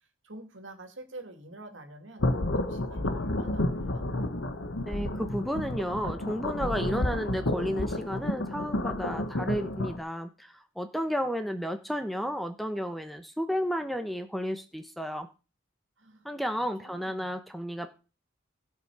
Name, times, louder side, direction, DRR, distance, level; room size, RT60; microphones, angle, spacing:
voice 1, 0.2-4.1 16.0-16.3 16.8-17.3, right 2 dB, 65° right, 6 dB, 2.5 m, -47 dB
sound 1, 2.2-10.0, left 1 dB, 75° left, 1.4 m, -31 dB
voice 2, 4.9-15.3 16.2-17.9, equal, ahead, 8 dB, 0.9 m, -32 dB
17.0 x 6.5 x 4.9 m, 0.33 s
head